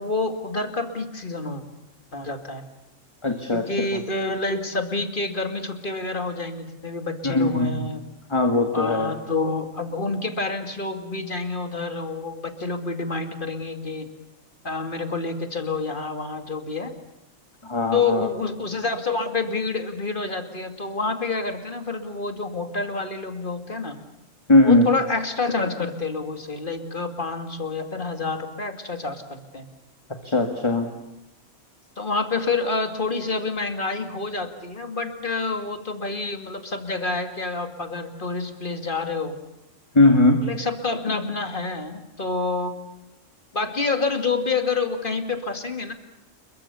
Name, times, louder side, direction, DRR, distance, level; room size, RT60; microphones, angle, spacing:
voice 1, 0.0-1.6 2.1-2.6 3.5-8.0 8.7-14.1 14.6-16.9 17.9-24.0 24.6-29.7 32.0-39.3 40.4-42.8 43.5-45.9, left 3 dB, 40° left, 6 dB, 2.6 m, -28 dB
voice 2, 3.2-4.0 7.2-7.9 8.3-9.2 17.6-18.3 24.5-24.9 30.2-30.9 39.9-40.5, left 2 dB, 20° left, 5 dB, 1.9 m, -19 dB
29.0 x 22.5 x 7.0 m, 0.90 s
omnidirectional pair, 1.3 m